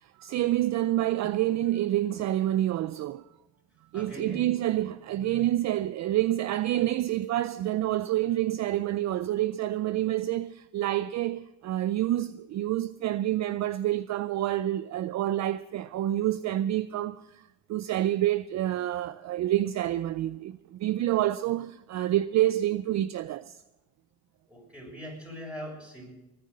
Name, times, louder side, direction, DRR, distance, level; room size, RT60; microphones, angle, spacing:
voice 1, 0.0-3.2 3.9-17.4 17.7-23.6, right 13 dB, 45° right, 0.5 m, -28 dB
voice 2, 3.9-4.5 24.5-26.1, equal, 5° right, 6.7 m, -41 dB
19.5 x 9.8 x 6.5 m
supercardioid pair, 100°, 38 cm